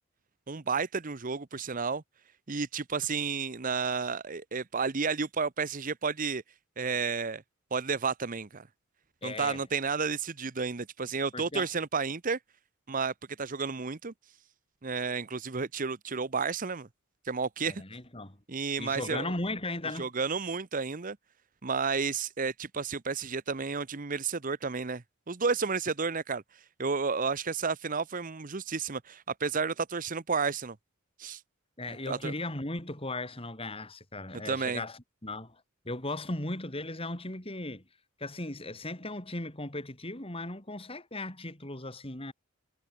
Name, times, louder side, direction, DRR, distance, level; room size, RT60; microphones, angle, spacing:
voice 1, 0.5-2.0 2.5-6.4 6.8-7.4 7.7-8.6 9.2-12.4 12.9-14.1 14.8-16.9 17.3-17.8 18.5-19.3 20.0-21.2 21.6-26.4 26.8-30.8 31.2-31.4 32.1-32.3 34.4-34.8, right 5 dB, 40° right, 0.9 m, -31 dB
voice 2, 9.2-9.6 11.3-11.7 17.6-18.4 18.8-20.1 31.8-37.8 38.2-42.3, left 2 dB, 25° left, 3.8 m, -37 dB
head